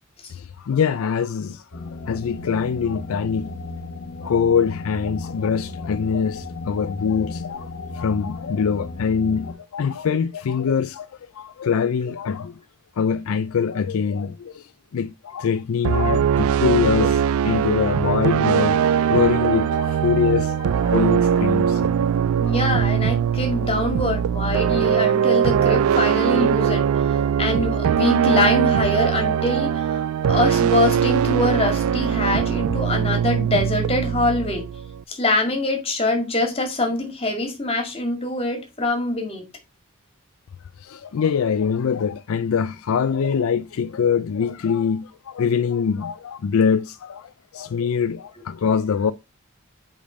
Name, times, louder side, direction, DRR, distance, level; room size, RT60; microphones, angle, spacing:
voice 1, 0.3-3.5 4.2-11.1 11.3-12.6 13.0-18.8 19.1-21.8 22.2-22.6 40.8-49.1, left 6 dB, 80° left, 0.4 m, -24 dB
sound 1, 1.7-9.5, left 3 dB, 65° left, 1.0 m, -35 dB
sound 2, 15.8-35.0, right 8 dB, 85° right, 0.3 m, -21 dB
voice 2, 22.4-26.9 27.4-30.0 30.3-34.7 35.1-39.4, left 2 dB, 25° left, 2.1 m, -24 dB
5.2 x 5.0 x 5.1 m
head